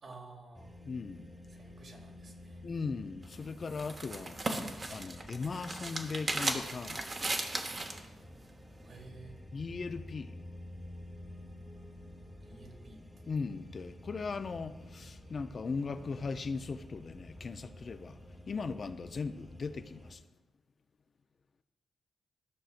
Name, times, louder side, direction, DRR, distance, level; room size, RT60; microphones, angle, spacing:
voice 1, 0.0-0.8 1.5-2.6 8.8-9.4 12.4-13.0, right 3 dB, 60° right, 1.8 m, -52 dB
sound 1, 0.5-20.2, left 1 dB, ahead, 1.1 m, -50 dB
voice 2, 0.9-1.3 2.6-4.4 4.9-7.4 9.5-10.3 13.3-18.2 18.5-20.2, left 4 dB, 50° left, 0.5 m, -38 dB
sound 2, 3.2-8.0, right 2 dB, 40° right, 1.2 m, -36 dB
14.0 x 6.2 x 2.5 m
supercardioid pair, 45°, 0 cm